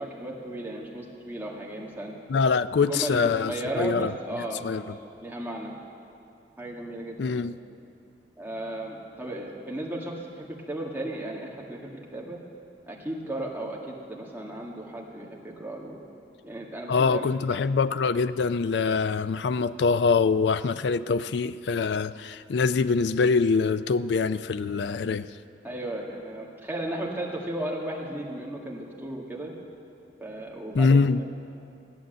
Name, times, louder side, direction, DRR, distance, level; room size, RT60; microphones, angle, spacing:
voice 1, 0.0-2.1 2.9-5.7 6.6-7.5 8.4-12.4 12.9-16.0 16.4-17.3 17.5-17.6 25.6-29.5 30.2-31.0, right 1 dB, 10° right, -3 dB, 2.0 m, -35 dB
voice 2, 2.3-4.1 4.6-4.8 7.2-7.6 16.9-25.3 30.7-31.2, left 4 dB, 70° left, 13 dB, 0.4 m, -24 dB
15.5 x 11.5 x 8.0 m, 2.5 s
head